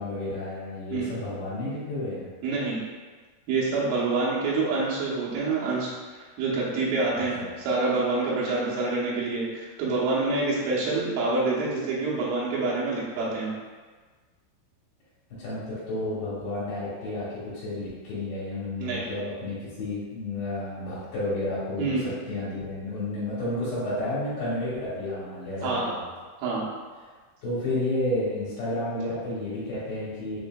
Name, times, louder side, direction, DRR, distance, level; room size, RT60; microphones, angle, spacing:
voice 1, 0.0-2.3 7.4-7.5 15.4-26.1 27.4-30.4, left 1 dB, 65° left, -10 dB, 2.9 m, -31 dB
voice 2, 2.4-2.8 3.5-13.5 18.8-19.0 21.8-22.0 25.6-25.9 26.4-26.7, right 3 dB, 85° right, -6 dB, 3.4 m, -27 dB
7.3 x 2.7 x 2.2 m, 1.4 s
omnidirectional pair, 5.5 m